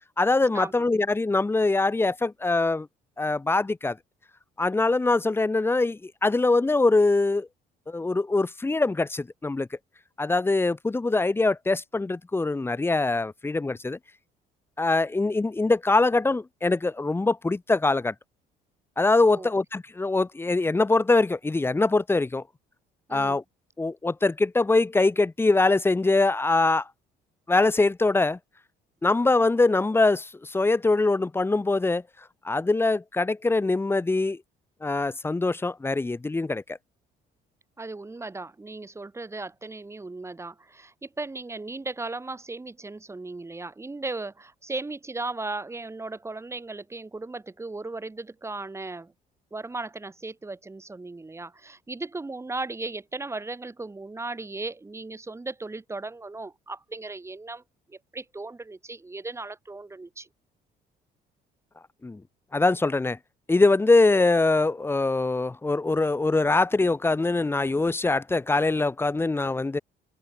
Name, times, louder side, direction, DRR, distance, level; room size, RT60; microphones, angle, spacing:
voice 1, 0.2-2.9 3.2-4.0 4.6-7.5 7.9-9.7 10.2-14.0 14.8-18.1 19.0-22.4 23.1-23.4 23.8-26.9 27.5-28.4 29.0-32.0 32.4-34.4 34.8-36.8 62.0-62.2 62.5-63.2 63.5-69.8, left 3 dB, 15° left, 1.0 m, -23 dB
voice 2, 37.8-49.1 49.5-57.6 57.9-60.3, right 3 dB, 15° right, 3.7 m, -36 dB
cardioid pair, 110°, 17 cm